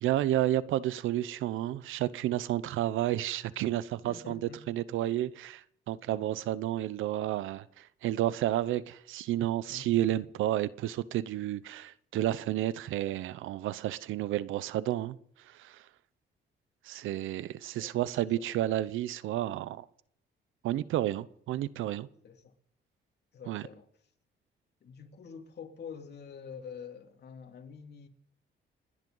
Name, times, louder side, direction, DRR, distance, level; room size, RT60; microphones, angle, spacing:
voice 1, 0.0-4.4 4.7-15.2 15.5-15.8 16.8-19.8 20.6-22.1 23.5-23.6, right 13 dB, 85° right, 0.8 m, -31 dB
voice 2, 4.0-4.6 9.7-10.3 17.8-18.0 18.4-18.5 22.2-22.5 23.3-23.9 24.8-28.1, left 6 dB, 55° left, 3.0 m, -47 dB
30.0 x 10.5 x 4.0 m
cardioid pair, 90°, 20 cm